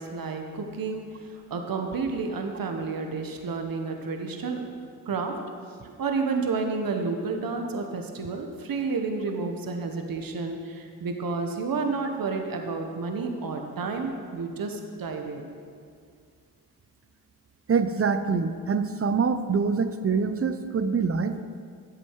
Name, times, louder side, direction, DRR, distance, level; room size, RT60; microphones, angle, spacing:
voice 1, 0.0-4.6 5.1-5.3 5.8-15.5, right 4 dB, 55° right, 4 dB, 1.3 m, -30 dB
voice 2, 17.7-21.4, right 5 dB, 35° right, 10 dB, 0.8 m, -25 dB
11.5 x 7.5 x 4.8 m, 2.1 s
supercardioid pair, 45°, 42 cm